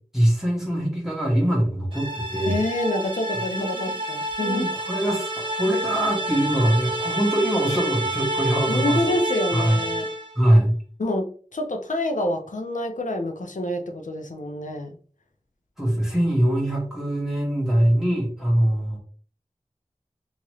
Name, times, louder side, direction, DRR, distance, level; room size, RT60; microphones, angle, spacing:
voice 1, 0.1-2.6 3.6-3.8 4.4-9.0 9.5-9.8 10.3-10.7 15.8-19.0, right 1 dB, 5° right, -3 dB, 1.2 m, -22 dB
sound 1, 1.9-10.4, right 2 dB, 40° right, 0.8 m, -29 dB
voice 2, 2.5-4.7 8.7-10.1 11.0-15.0, left 1 dB, 90° left, 4 dB, 0.5 m, -27 dB
2.8 x 2.5 x 3.1 m, 0.42 s
wide cardioid pair, 45°, 13 cm